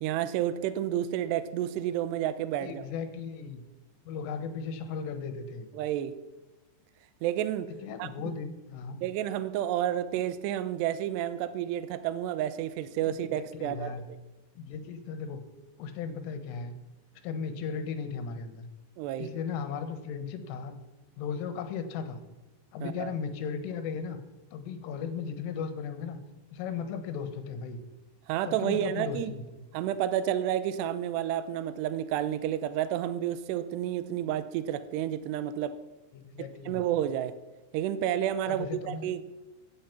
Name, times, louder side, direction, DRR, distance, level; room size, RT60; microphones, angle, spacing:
voice 1, 0.0-2.8 5.8-6.2 7.2-7.7 8.0-8.3 9.0-13.9 19.0-19.3 22.8-23.1 28.3-29.3 29.7-35.8 36.7-37.3 37.7-39.2, right 11 dB, 85° right, 2.5 m, -30 dB
voice 2, 2.6-3.6 4.1-5.7 7.8-9.0 13.0-14.0 14.6-15.4 15.8-16.8 17.2-18.6 19.2-20.8 21.2-22.2 22.7-24.2 24.5-26.2 26.5-27.8 28.5-29.4 36.1-36.9 38.5-39.1, left 6 dB, 80° left, 3.8 m, -36 dB
16.0 x 10.0 x 5.9 m
omnidirectional pair, 5.8 m